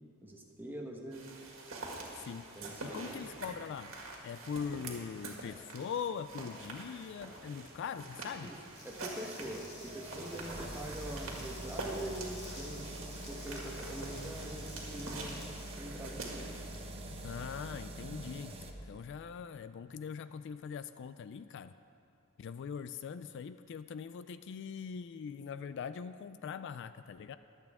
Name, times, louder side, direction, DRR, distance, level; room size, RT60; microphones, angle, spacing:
voice 1, 0.2-1.2 2.6-3.3 8.4-8.6 8.8-15.4 15.8-16.5, right 1 dB, 10° right, 0 dB, 1.2 m, -44 dB
sound 1, 1.1-16.6, right 2 dB, 65° right, 1.9 m, -46 dB
voice 2, 2.1-2.4 2.8-3.9 4.2-8.5 17.1-18.6 18.8-21.7 22.4-27.4, left 6 dB, 55° left, 12 dB, 0.3 m, -41 dB
sound 2, 8.4-18.7, right 1 dB, 25° right, 0.9 m, -45 dB
sound 3, 8.6-17.6, left 1 dB, 30° left, 2.3 m, -53 dB
23.0 x 8.2 x 3.6 m, 2.7 s
head